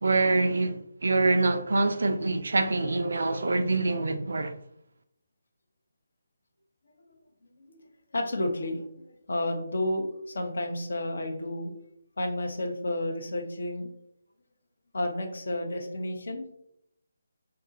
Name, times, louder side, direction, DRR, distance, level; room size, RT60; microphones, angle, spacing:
voice 1, 0.0-4.5, right 3 dB, 55° right, 0.3 m, -25 dB
voice 2, 7.5-7.8 8.1-11.7 12.2-13.9 14.9-16.5, left 1 dB, 55° left, 0.7 m, -31 dB
4.7 x 2.3 x 2.8 m
figure-of-eight pair, 145°, 0 cm